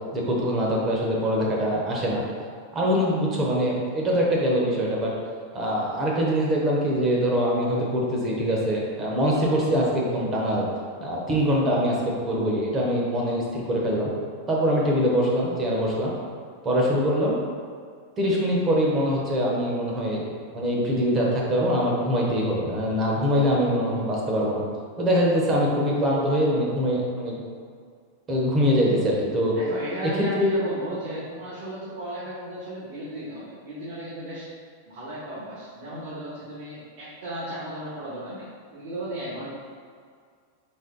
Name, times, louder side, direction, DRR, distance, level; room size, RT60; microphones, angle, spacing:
voice 1, 0.1-2.2 2.7-5.1 5.5-10.7 11.0-12.0 12.2-14.1 14.5-16.1 16.6-17.3 18.2-20.2 20.5-24.6 25.0-27.4 28.3-29.6 30.0-30.5, equal, 20° right, -3 dB, 0.8 m, -23 dB
voice 2, 29.5-34.5 34.9-38.5 38.7-39.5, right 1 dB, 65° right, -10 dB, 1.4 m, -35 dB
4.3 x 2.9 x 3.9 m, 2.1 s
supercardioid pair, 160°, 0 cm